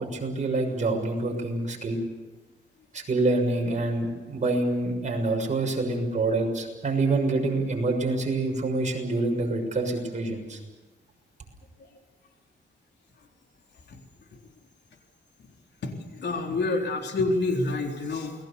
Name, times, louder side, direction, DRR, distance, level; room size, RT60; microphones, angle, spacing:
voice 1, 0.0-2.0 2.9-10.6, right 2 dB, 40° right, 2 dB, 6.6 m, -26 dB
voice 2, 16.2-18.3, left 2 dB, 65° left, 2 dB, 3.9 m, -27 dB
29.0 x 21.0 x 7.0 m, 1.2 s
cardioid pair, 125°, 19 cm